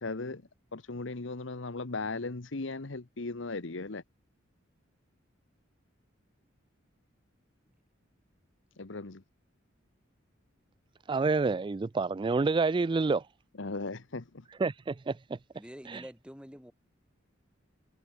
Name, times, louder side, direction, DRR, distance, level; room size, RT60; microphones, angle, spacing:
voice 1, 0.0-4.0 8.8-9.2 13.6-14.4, left 3 dB, 70° left, 1.1 m, -37 dB
voice 2, 11.1-13.2 14.6-15.4 15.9-16.0, right 4 dB, 25° right, 0.3 m, -28 dB
voice 3, 15.5-16.7, equal, 5° right, 3.9 m, -47 dB
head